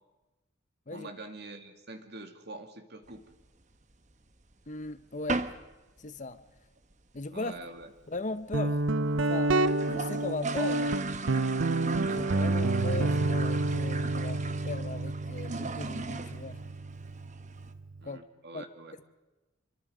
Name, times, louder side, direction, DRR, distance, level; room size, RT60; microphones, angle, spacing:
voice 1, 0.9-3.2 7.3-7.9 18.0-19.0, right 2 dB, 55° right, 2.4 m, -45 dB
sound 1, 3.1-4.1 4.5-4.6 4.8-5.0 5.3-5.7 6.0-6.1 6.4-6.5 6.7-7.2 7.6-7.7 7.8-7.9 8.2-8.3 8.8-8.9 9.1-9.2 9.5-17.7, right 3 dB, 35° right, 1.1 m, -38 dB
voice 2, 4.7-5.5 6.0-6.4 7.1-7.5 8.1-8.9 9.3-9.6 9.9-11.0 11.8-16.6 18.0-18.2 18.5-18.6, left 3 dB, 40° left, 0.8 m, -38 dB
Guitar, 8.5-18.0, right 2 dB, 70° right, 0.7 m, -29 dB
26.5 x 24.5 x 5.1 m
head